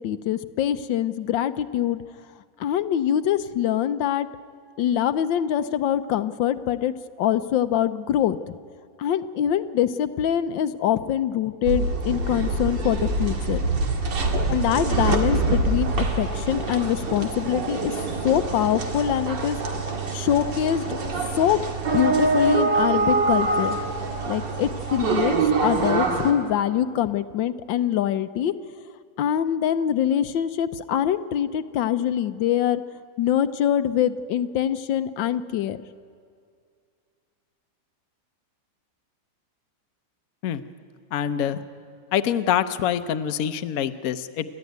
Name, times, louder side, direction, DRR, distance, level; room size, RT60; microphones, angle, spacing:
voice 1, 0.0-2.0 2.6-4.3 4.8-6.9 7.2-8.4 9.0-13.6 14.5-17.9 18.2-19.6 20.1-20.8 21.4-21.6 21.9-23.8 24.2-25.4 25.6-28.5 29.2-32.8 33.2-35.8, left 10 dB, 80° left, 11 dB, 1.4 m, -24 dB
sound 1, 11.6-26.3, right 3 dB, 70° right, 2.7 m, -25 dB
voice 2, 41.1-41.6 42.1-44.4, left 9 dB, 60° left, 9 dB, 1.1 m, -25 dB
28.0 x 13.0 x 9.3 m, 2.2 s
omnidirectional pair, 2.0 m